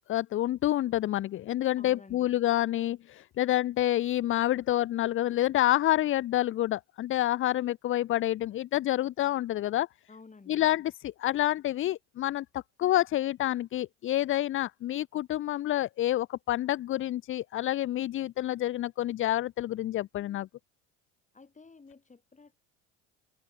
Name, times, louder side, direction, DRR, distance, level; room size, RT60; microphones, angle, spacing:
voice 1, 0.1-9.9 10.5-20.5, left 14 dB, 35° left, 0.5 m, -28 dB
voice 2, 1.8-2.4 10.1-10.7 21.3-22.7, left 4 dB, 20° left, 4.8 m, -53 dB
hypercardioid pair, 85°, 37 cm